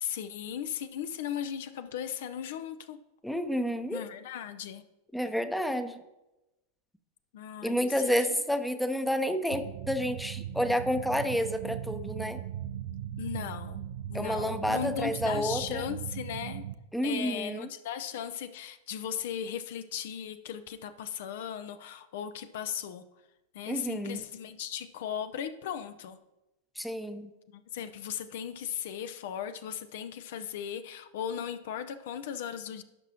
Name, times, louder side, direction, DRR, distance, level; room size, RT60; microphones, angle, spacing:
voice 1, 0.0-3.0 3.9-4.8 7.3-8.2 13.2-13.8 14.1-16.6 17.0-23.0 23.5-26.2 27.5-32.8, left 9 dB, 55° left, 11 dB, 0.5 m, -37 dB
voice 2, 3.2-4.0 5.1-6.0 7.6-12.4 14.1-15.8 16.9-17.7 23.7-24.2 26.8-27.3, equal, ahead, 9 dB, 0.7 m, -30 dB
sound 1, 9.5-16.7, right 11 dB, 55° right, 0.4 m, -38 dB
16.5 x 6.0 x 2.8 m, 1.0 s
figure-of-eight pair, 90°, 0 cm